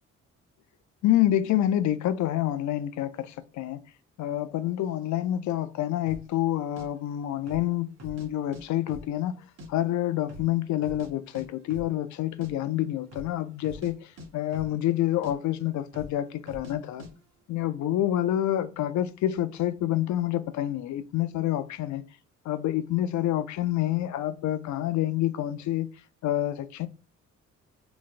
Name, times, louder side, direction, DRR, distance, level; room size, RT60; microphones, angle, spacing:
voice 1, 1.0-3.8 4.2-9.4 9.7-14.0 14.3-17.1 17.5-22.0 22.5-25.9 26.2-26.9, left 13 dB, 70° left, 0.5 m, -27 dB
sound 1, 6.1-6.3 6.8-6.9 7.4-7.7 8.0-8.6 8.9-9.7 9.9-10.0 10.3-11.1 11.3-11.4 11.7-11.9 12.2-12.5 13.0-13.3 13.6-13.9 14.2-15.0 15.2-15.3 15.9-16.2 16.5-16.7 17.0-17.1, left 1 dB, 60° right, 1.4 m, -44 dB
3.9 x 3.4 x 2.4 m
cardioid pair, 90°, 30 cm